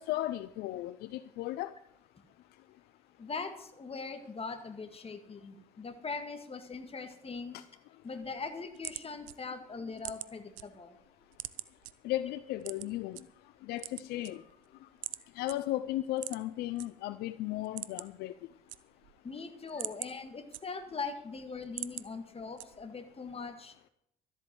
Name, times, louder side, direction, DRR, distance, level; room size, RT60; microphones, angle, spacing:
voice 1, 0.0-1.7 12.0-13.2 13.7-14.4 15.4-18.3, left 14 dB, 70° left, 14 dB, 0.5 m, -35 dB
voice 2, 3.2-7.6 8.0-11.0 19.2-23.7, left 4 dB, 35° left, 8 dB, 2.2 m, -41 dB
sound 1, 8.4-10.6 11.0-11.9 12.6-13.2 13.7-14.7 15.0-15.2 15.5-15.6 16.1-16.9 17.2-17.3 17.6-18.2 18.5-19.2 19.6-21.0 21.4-22.1 22.6-23.0, right 18 dB, 90° right, 0.5 m, -42 dB
13.0 x 8.1 x 7.8 m, 0.76 s
hypercardioid pair, 55°, 17 cm